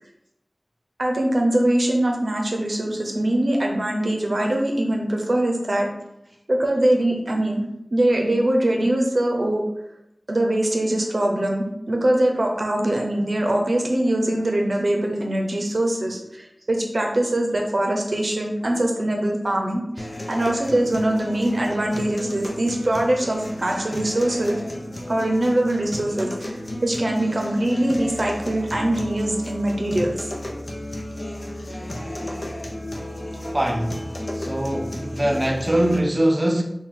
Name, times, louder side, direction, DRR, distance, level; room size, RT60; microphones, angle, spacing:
voice 1, 1.0-5.9 6.5-7.6 7.9-9.6 10.3-24.6 25.1-26.6 26.8-30.1 32.0-32.1 33.4-33.5, right 1 dB, 70° right, 0.7 m, -22 dB
sound 1, 20.0-36.0, left 1 dB, 60° left, 0.6 m, -33 dB
voice 2, 33.5-33.9 34.4-36.6, right 1 dB, 30° right, 0.5 m, -22 dB
4.3 x 2.3 x 3.7 m
wide cardioid pair, 55°, 0 cm